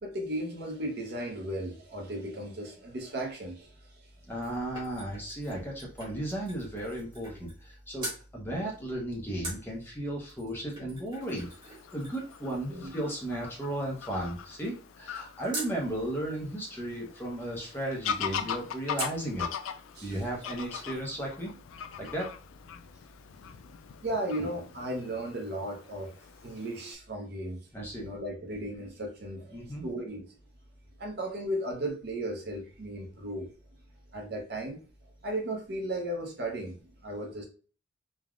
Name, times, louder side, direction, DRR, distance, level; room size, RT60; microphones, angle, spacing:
voice 1, 0.0-4.0 10.8-10.9 12.7-12.9 19.9-20.2 24.0-26.1 26.4-27.6 28.0-30.3 31.0-33.5 34.1-34.8 35.2-36.8 37.0-37.5, right 1 dB, 55° right, 0.7 m, -35 dB
sound 1, 4.1-7.7 8.0-8.2 9.4-15.8 19.0-19.3 19.8-19.9 20.1-21.1 21.4-21.5, right 1 dB, 20° right, 1.1 m, -44 dB
voice 2, 4.3-8.1 8.3-19.5 20.0-21.5 22.0-22.3 27.7-28.1 29.5-29.9, right 1 dB, 10° left, 0.7 m, -35 dB
Fowl / Bird vocalization bird call bird song, 11.2-26.9, left 8 dB, 85° left, 0.3 m, -41 dB
3.3 x 2.1 x 2.4 m
head